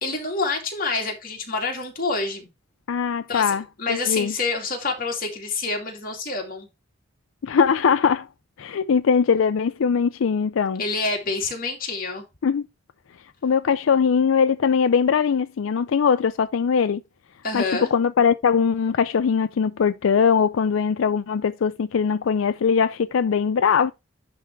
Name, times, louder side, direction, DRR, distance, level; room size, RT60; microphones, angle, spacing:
voice 1, 0.0-2.5 3.3-6.7 10.8-12.2 17.4-17.9, left 3 dB, 45° left, 2.4 m, -27 dB
voice 2, 2.9-4.3 7.4-8.3 8.6-10.8 12.4-12.7 13.4-17.0 17.5-17.6 17.9-23.9, left 6 dB, 85° left, 0.4 m, -21 dB
10.5 x 3.5 x 4.5 m
head